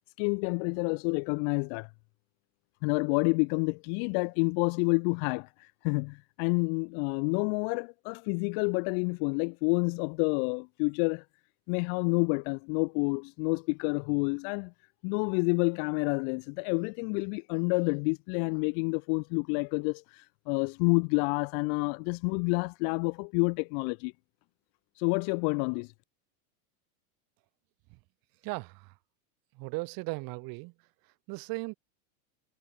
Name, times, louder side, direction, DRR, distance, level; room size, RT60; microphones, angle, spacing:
voice 1, 0.2-1.9 2.8-5.5 5.8-11.2 11.7-14.7 15.0-24.1 25.0-25.9, left 40 dB or more, 45° left, 0.4 m, -29 dB
voice 2, 28.4-28.9 29.5-30.7 31.0-31.7, right 28 dB, 50° right, 3.7 m, -37 dB
supercardioid pair, 135°, 42 cm